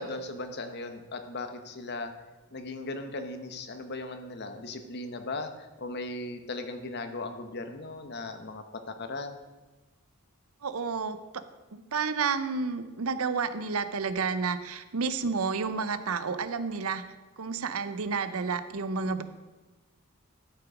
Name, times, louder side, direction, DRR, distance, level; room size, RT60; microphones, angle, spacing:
voice 1, 0.0-2.1 2.5-9.4, left 2 dB, 50° left, 8 dB, 0.9 m, -37 dB
voice 2, 10.6-11.4 11.7-17.0 17.4-19.2, right 5 dB, 75° right, 12 dB, 0.7 m, -30 dB
12.0 x 6.0 x 5.0 m, 1.2 s
head